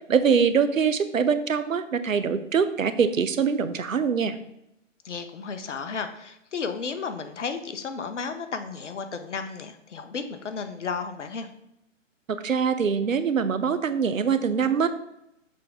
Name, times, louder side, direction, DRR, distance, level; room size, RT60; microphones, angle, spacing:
voice 1, 0.1-4.4 12.3-14.9, right 6 dB, 85° right, 12 dB, 0.8 m, -23 dB
voice 2, 5.0-11.5, left 5 dB, 65° left, 8 dB, 1.0 m, -33 dB
6.7 x 3.5 x 5.2 m, 0.83 s
figure-of-eight pair, 140°, 39 cm